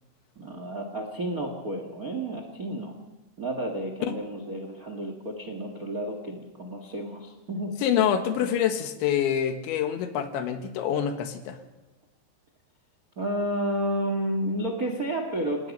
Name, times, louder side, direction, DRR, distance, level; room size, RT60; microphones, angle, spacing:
voice 1, 0.3-2.9 3.4-7.8 13.2-15.7, right 1 dB, 65° right, 4 dB, 0.8 m, -31 dB
voice 2, 7.8-11.6, left 9 dB, 90° left, 6 dB, 3.8 m, -26 dB
28.0 x 18.0 x 5.4 m, 1.1 s
omnidirectional pair, 5.1 m